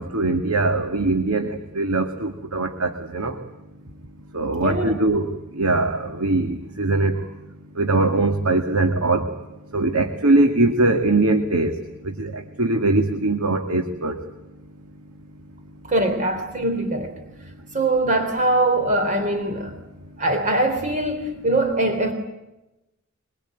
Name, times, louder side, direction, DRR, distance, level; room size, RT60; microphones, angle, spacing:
voice 1, 0.0-1.5 1.8-3.3 4.3-5.3 5.6-7.1 7.8-9.3 9.7-11.7 12.0-14.2, right 2 dB, 85° right, 5 dB, 2.1 m, -21 dB
voice 2, 4.6-5.0 15.9-17.1 17.7-19.7 20.2-22.1, right 2 dB, 35° right, 6 dB, 3.4 m, -22 dB
24.0 x 23.5 x 9.0 m, 0.97 s
head